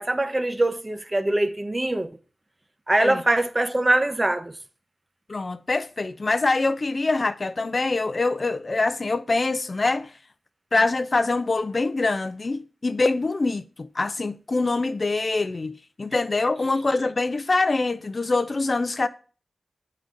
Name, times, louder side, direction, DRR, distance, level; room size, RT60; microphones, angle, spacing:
voice 1, 0.0-2.1 2.9-4.5, right 1 dB, 30° right, 0.8 m, -23 dB
voice 2, 5.3-10.1 10.7-19.1, left 3 dB, 55° left, 0.4 m, -24 dB
8.0 x 3.9 x 4.7 m
cardioid pair, 45°, 0 cm